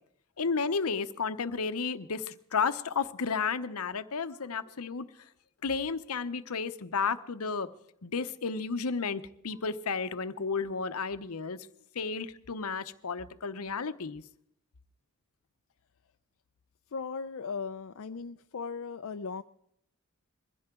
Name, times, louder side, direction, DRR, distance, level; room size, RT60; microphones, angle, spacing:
voice 1, 0.4-5.1 5.6-7.7 8.0-11.6 11.9-14.2, left 5 dB, 75° left, 12 dB, 0.8 m, -32 dB
voice 2, 16.9-19.4, left 5 dB, 60° left, 8 dB, 0.5 m, -37 dB
22.0 x 15.5 x 3.8 m, 0.75 s
head